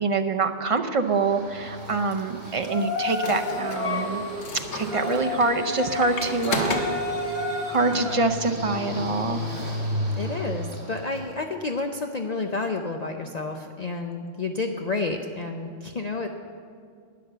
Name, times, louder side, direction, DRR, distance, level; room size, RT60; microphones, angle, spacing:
voice 1, 0.0-4.2 4.7-6.8 7.7-9.5, right 3 dB, 35° right, 6 dB, 0.6 m, -25 dB
Yell, 1.1-11.3, left 2 dB, 60° right, 2.6 m, -32 dB
sound 1, 1.9-8.2, left 1 dB, 70° left, 1.4 m, -32 dB
voice 2, 10.1-16.3, left 3 dB, 45° left, 3 dB, 0.6 m, -30 dB
11.5 x 9.7 x 6.7 m, 2.1 s
omnidirectional pair, 1.2 m